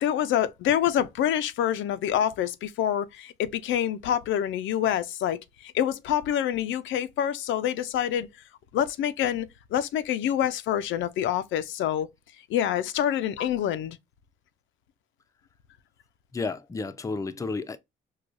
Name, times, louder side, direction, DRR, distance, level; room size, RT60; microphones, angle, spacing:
voice 1, 0.0-8.3 8.7-12.1 12.5-14.0, left 10 dB, 75° left, 0.5 m, -26 dB
voice 2, 16.3-17.8, left 3 dB, 15° left, 0.4 m, -32 dB
4.7 x 2.2 x 2.5 m
cardioid pair, 90°, 20 cm